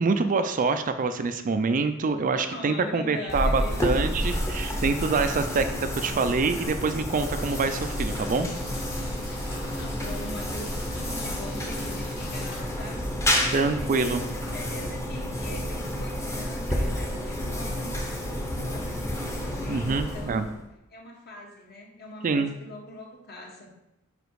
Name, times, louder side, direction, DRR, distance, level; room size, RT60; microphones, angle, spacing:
voice 1, 0.0-5.6 6.0-8.5 13.5-14.2 19.7-20.4 22.2-22.5, right 4 dB, 40° right, 9 dB, 0.4 m, -25 dB
voice 2, 2.3-4.1 4.6-4.9 5.1-5.7 6.1-6.3 9.2-13.1 13.3-20.6 20.9-23.7, left 1 dB, 50° left, -1 dB, 1.5 m, -42 dB
sound 1, 3.3-20.7, equal, 15° left, 0.9 m, -30 dB
sound 2, 7.4-12.6, left 2 dB, 85° left, 2.6 m, -45 dB
5.0 x 5.0 x 4.7 m, 0.90 s
head